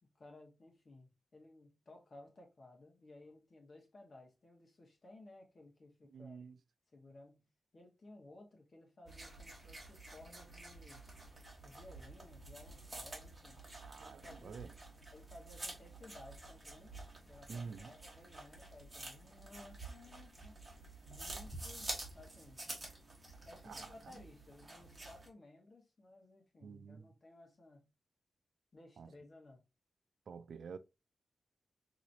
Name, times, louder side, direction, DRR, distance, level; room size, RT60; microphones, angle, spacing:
voice 1, 0.0-6.4 6.9-11.1 11.6-13.6 14.0-14.6 15.1-17.0 17.2-20.6 21.0-22.6 23.4-27.9 28.7-29.6, left 2 dB, 45° left, 1.2 m, -58 dB
voice 2, 6.1-6.6 13.8-14.7 17.5-17.9 23.6-24.2 26.6-27.1 29.0-29.1 30.3-30.8, right 5 dB, 80° right, 0.3 m, -49 dB
sound 1, 9.1-25.3, right 2 dB, 20° right, 1.2 m, -49 dB
3.9 x 3.0 x 2.6 m
wide cardioid pair, 130°, 0 cm